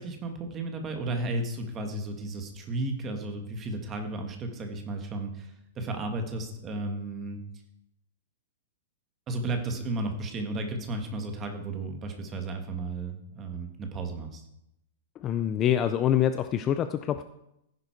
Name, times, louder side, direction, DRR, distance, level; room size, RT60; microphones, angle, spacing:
voice 1, 0.0-7.4 9.3-14.5, right 2 dB, 15° right, 5 dB, 1.6 m, -34 dB
voice 2, 15.2-17.2, left 10 dB, 20° left, 10 dB, 0.4 m, -25 dB
15.0 x 10.5 x 4.5 m, 0.83 s
supercardioid pair, 175°, 0 cm